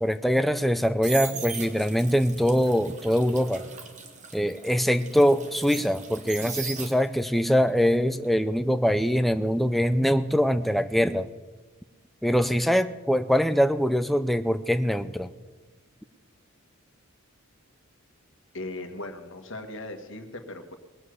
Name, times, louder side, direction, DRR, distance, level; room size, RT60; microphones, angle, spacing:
voice 1, 0.0-3.6 4.3-11.3 12.2-15.3, equal, ahead, 10 dB, 0.5 m, -23 dB
sound 1, 0.6-7.3 7.7-10.6 10.8-11.2, right 5 dB, 35° right, 1.6 m, -39 dB
voice 2, 18.5-20.8, left 2 dB, 60° left, 6 dB, 1.7 m, -38 dB
20.0 x 7.4 x 8.1 m, 1.2 s
head